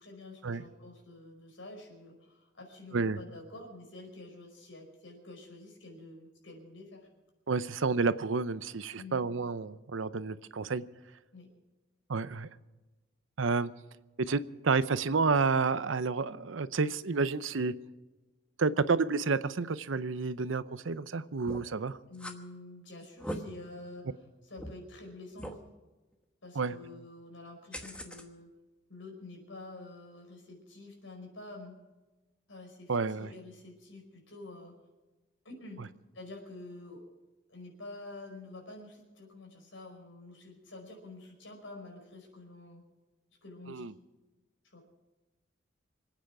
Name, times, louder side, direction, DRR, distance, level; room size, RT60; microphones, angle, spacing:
voice 1, 0.0-7.1 8.9-9.3 11.3-11.5 22.1-24.1 24.4-25.7 26.4-28.5 28.9-31.7 32.5-34.8 35.5-35.8 36.1-37.0 37.5-42.8 43.4-43.9 44.6-44.8, left 2 dB, 80° left, 2 dB, 5.1 m, -48 dB
voice 2, 7.5-10.8 12.1-12.5 13.4-13.7 14.2-17.7 18.6-22.0 26.6-26.7 32.9-33.3 43.7-43.9, right 4 dB, 80° right, 15 dB, 0.7 m, -30 dB
sound 1, 21.5-21.7 22.1-22.4 23.0-23.4 24.0-24.1 24.6-24.7 25.4-25.6 27.7-28.2, equal, 5° left, 1.1 m, -40 dB
26.0 x 9.1 x 6.0 m, 1.2 s
head